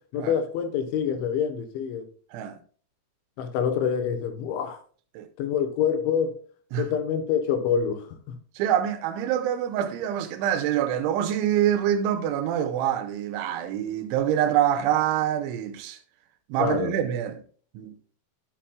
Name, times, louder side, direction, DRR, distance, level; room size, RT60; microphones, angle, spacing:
voice 1, 0.1-2.1 3.4-4.8 5.4-6.4 6.8-8.4 16.6-17.0, left 7 dB, 85° left, 3.5 m, -26 dB
voice 2, 8.6-16.0 16.5-17.4 17.7-17.9, right 10 dB, 85° right, 3.2 m, -25 dB
10.0 x 7.4 x 2.3 m
omnidirectional pair, 5.3 m